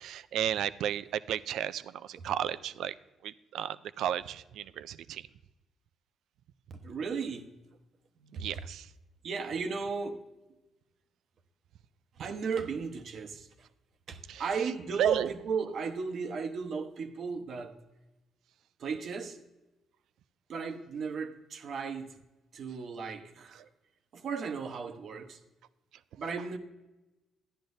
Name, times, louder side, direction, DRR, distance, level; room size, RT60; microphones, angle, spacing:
voice 1, 0.0-3.0 3.2-5.3 8.3-8.9 14.3-14.4 15.0-15.3, right 10 dB, 80° right, 16 dB, 0.3 m, -33 dB
voice 2, 6.7-7.5 8.2-8.6 9.2-10.2 12.2-13.5 14.1-17.7 18.8-19.4 20.5-22.1 22.5-23.6 24.1-25.4 26.2-26.6, right 5 dB, 60° right, 7 dB, 1.0 m, -35 dB
13.0 x 10.5 x 2.7 m, 1.0 s
cardioid pair, 90°, 0 cm